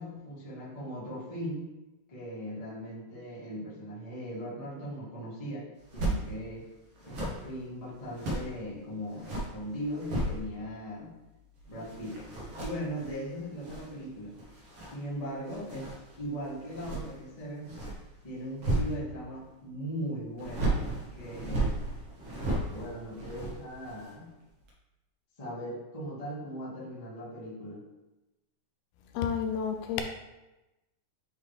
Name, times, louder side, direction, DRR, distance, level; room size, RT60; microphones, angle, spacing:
voice 1, 0.0-1.7 2.1-5.7 5.9-6.6 7.0-11.1 11.7-12.2 12.6-14.4 14.9-15.9 16.2-17.8 18.2-20.8 21.1-21.8 22.7-24.3 25.4-27.8, equal, 45° left, -8 dB, 0.4 m, -39 dB
sound 1, 5.8-6.2 7.0-8.6 9.0-10.7 11.0-19.4 20.4-24.2 24.6-24.7, right 2 dB, 85° right, 1.1 m, -35 dB
voice 2, 29.1-30.0, left 7 dB, 80° left, 5 dB, 2.4 m, -30 dB
9.3 x 3.3 x 3.3 m, 1.0 s
omnidirectional pair, 4.5 m